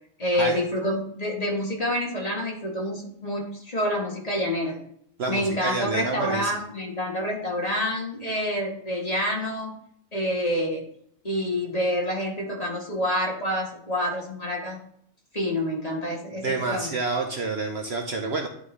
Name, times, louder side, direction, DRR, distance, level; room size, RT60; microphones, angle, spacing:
voice 1, 0.2-4.8 5.3-9.8 10.1-10.8 11.2-14.8 15.3-16.9, equal, 30° left, -2 dB, 1.5 m, -27 dB
voice 2, 5.2-6.5 16.4-18.5, right 3 dB, 55° right, 3 dB, 0.9 m, -28 dB
11.0 x 3.8 x 3.2 m, 0.67 s
omnidirectional pair, 1.4 m